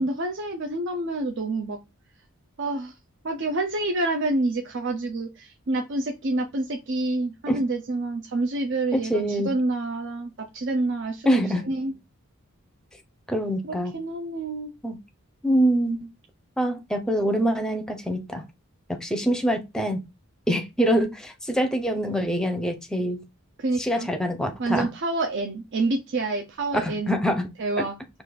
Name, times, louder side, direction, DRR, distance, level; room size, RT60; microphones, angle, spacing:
voice 1, 0.0-1.8 2.6-2.9 3.2-11.3 11.7-11.9 13.6-14.7 23.6-24.1 24.6-27.1 27.6-28.0, right 2 dB, 60° right, 0.6 m, -27 dB
voice 2, 8.9-9.5 11.3-11.7 13.3-13.9 14.8-15.0 15.4-16.1 16.6-18.4 18.9-20.1 20.5-23.2 23.8-24.9 26.7-27.5, equal, 5° left, 0.6 m, -24 dB
5.0 x 2.5 x 3.9 m
head